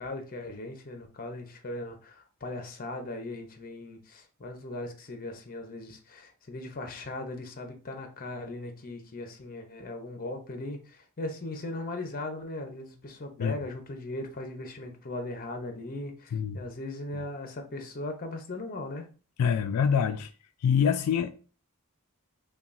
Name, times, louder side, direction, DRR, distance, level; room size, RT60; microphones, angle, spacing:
voice 1, 0.0-19.1, left 2 dB, 40° left, 0.7 m, -38 dB
voice 2, 19.4-20.3 20.6-21.3, left 7 dB, 85° left, 0.3 m, -25 dB
5.7 x 2.3 x 2.5 m
head